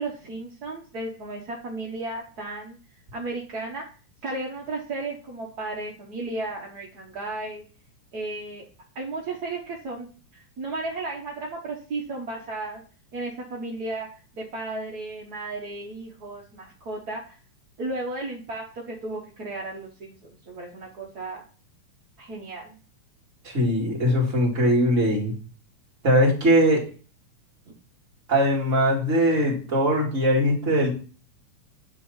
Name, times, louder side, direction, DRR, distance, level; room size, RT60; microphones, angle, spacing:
voice 1, 0.0-2.8 3.1-3.8 4.2-7.6 8.1-8.6 8.9-10.1 10.3-12.8 13.1-14.1 14.3-17.3 17.8-21.4 22.2-22.8, right 2 dB, 45° right, -2 dB, 1.3 m, -34 dB
voice 2, 23.4-25.3 26.0-26.8 28.3-30.9, equal, 25° right, -1 dB, 2.5 m, -21 dB
9.8 x 4.1 x 5.6 m, 0.37 s
omnidirectional pair, 3.5 m